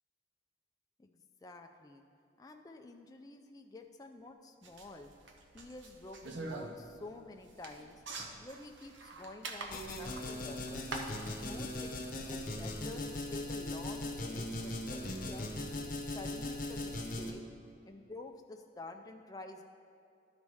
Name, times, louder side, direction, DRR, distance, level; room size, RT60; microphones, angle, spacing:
voice 1, 1.4-2.1 2.4-5.1 5.5-8.0 8.4-10.9 11.4-15.5 16.1-17.4 17.9-19.6, left 2 dB, 20° left, 4 dB, 0.3 m, -49 dB
sound 1, 4.6-12.3, right 3 dB, 65° right, 0.8 m, -46 dB
sound 2, 9.7-17.3, left 1 dB, 45° left, 0.8 m, -39 dB
12.0 x 4.1 x 4.8 m, 2.6 s
head